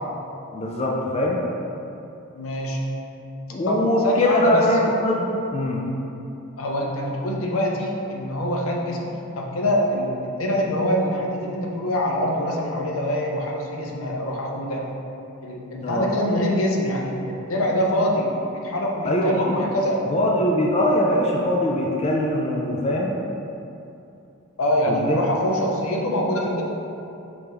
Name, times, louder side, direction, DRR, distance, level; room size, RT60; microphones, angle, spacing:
voice 1, 0.5-1.4 3.5-5.8 15.8-16.1 19.0-19.6 20.1-23.1 24.9-25.2, left 1 dB, 30° left, -2 dB, 0.4 m, -22 dB
voice 2, 2.4-2.8 3.7-4.7 6.6-9.1 9.3-14.9 15.4-20.0 24.6-26.6, equal, 85° left, -1 dB, 0.6 m, -24 dB
5.1 x 3.4 x 2.9 m, 2.8 s
head